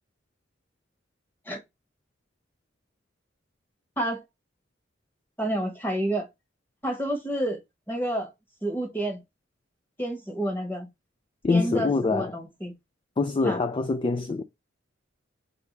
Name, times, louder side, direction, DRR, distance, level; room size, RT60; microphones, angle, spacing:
voice 1, 5.4-6.3 6.8-7.6 7.9-8.3 8.6-9.2 10.0-10.9 11.5-12.7 13.4-13.6, right 1 dB, 10° left, 1.3 m, -29 dB
voice 2, 11.4-12.3 13.2-14.4, left 3 dB, 25° left, 0.3 m, -24 dB
3.5 x 2.7 x 4.6 m
head